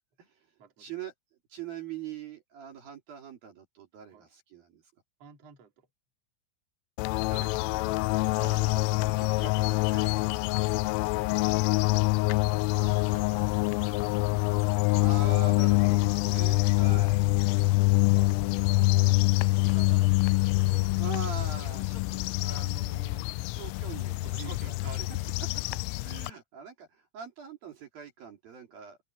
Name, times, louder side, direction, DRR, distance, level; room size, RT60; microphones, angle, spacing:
voice 1, 0.8-1.1 1.5-4.8 8.6-8.9 9.2-9.6 9.9-10.7 11.1-11.8 14.9-17.3 21.0-25.2 25.9-29.0, right 7 dB, 50° right, 4.2 m, -43 dB
voice 2, 5.2-5.9 7.3-8.0 8.4-9.5 10.0-10.3 12.7-14.3 14.7-14.8 16.7-17.1 18.1-18.8 19.6-21.3 24.2-25.3, right 6 dB, 35° right, 3.6 m, -50 dB
sound 1, 7.0-26.3, left 22 dB, 85° left, 3.2 m, -25 dB
open air
omnidirectional pair, 5.8 m